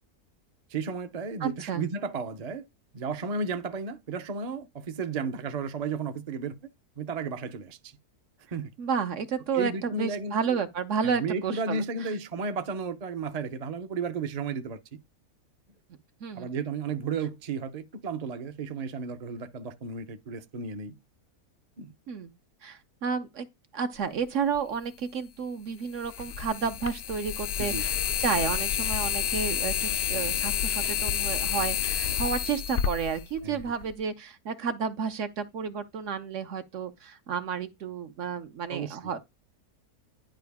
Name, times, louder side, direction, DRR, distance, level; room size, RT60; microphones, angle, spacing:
voice 1, 0.7-2.6 2.9-6.5 7.0-7.9 8.5-8.7 9.5-10.6 11.0-14.8 16.3-20.9 21.8-21.9 27.6-27.9 33.4-33.6 38.7-39.0, right 4 dB, 40° right, 0.6 m, -33 dB
voice 2, 1.4-1.9 8.8-12.1 16.2-16.5 22.1-22.3 22.6-39.2, right 6 dB, 60° right, 1.0 m, -31 dB
sound 1, 24.5-24.6 26.0-33.9, left 8 dB, 80° left, 0.5 m, -29 dB
10.5 x 4.8 x 3.5 m
omnidirectional pair, 1.6 m